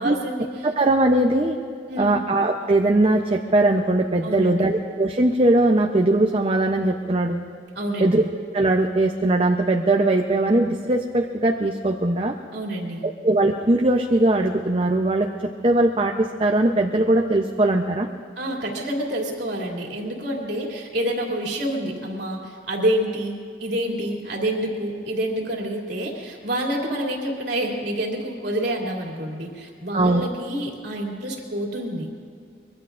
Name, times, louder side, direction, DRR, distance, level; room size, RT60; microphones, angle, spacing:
voice 1, 0.0-0.5 1.9-2.2 4.2-4.7 7.7-8.3 12.5-13.1 18.4-32.1, right 1 dB, 70° right, -1 dB, 2.9 m, -28 dB
voice 2, 0.6-1.6 2.0-7.4 8.0-8.2 8.5-12.3 13.2-18.1 29.9-30.2, right 2 dB, 30° right, 2 dB, 0.7 m, -20 dB
24.5 x 22.5 x 2.5 m, 2.3 s
head